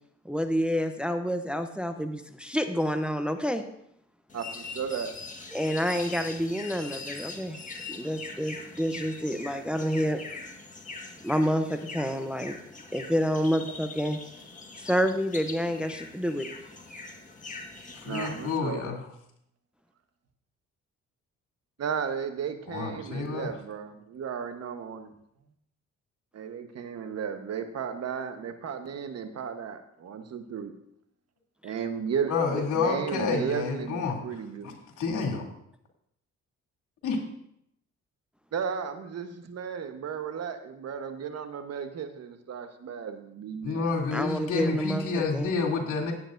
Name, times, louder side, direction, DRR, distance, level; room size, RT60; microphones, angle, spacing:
voice 1, 0.2-3.6 5.5-7.6 7.9-10.2 11.2-12.6 12.9-14.2 14.8-16.5 44.1-45.5, equal, 5° right, 7 dB, 0.7 m, -28 dB
sound 1, 4.3-18.6, left 3 dB, 25° left, 1.5 m, -42 dB
voice 2, 4.3-5.1 18.0-18.8 21.8-25.1 26.3-30.7 31.6-34.7 38.5-44.0, right 7 dB, 55° right, 7 dB, 1.2 m, -34 dB
voice 3, 17.9-19.0 22.7-23.5 32.3-34.2 34.6-35.5 37.0-37.2 43.6-46.1, left 4 dB, 80° left, 0 dB, 3.0 m, -29 dB
17.0 x 8.9 x 2.6 m, 0.74 s
cardioid pair, 90°, 30 cm